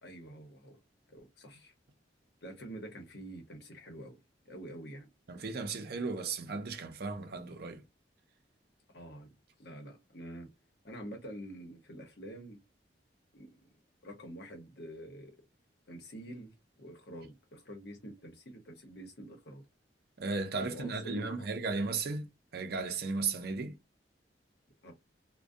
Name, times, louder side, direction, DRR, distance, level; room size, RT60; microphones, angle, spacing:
voice 1, 0.0-0.8 1.1-1.7 2.4-4.2 4.4-5.1 8.9-9.3 9.6-10.5 10.8-12.6 13.3-13.6 14.0-15.3 15.9-19.6 20.6-21.5 24.8-24.9, right 1 dB, 60° left, 0.9 m, -47 dB
voice 2, 5.3-7.8 20.2-23.8, right 4 dB, 60° right, 0.5 m, -35 dB
2.5 x 2.1 x 2.4 m
head